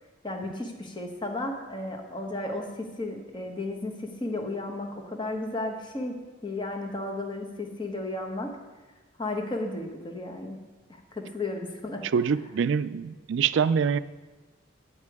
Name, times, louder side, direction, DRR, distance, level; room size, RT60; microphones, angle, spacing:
voice 1, 0.2-8.6 9.2-10.6 10.9-12.0, left 2 dB, 25° left, 3 dB, 1.0 m, -34 dB
voice 2, 12.1-14.0, right 6 dB, 65° right, 15 dB, 0.3 m, -25 dB
9.6 x 8.9 x 4.7 m, 1.2 s
head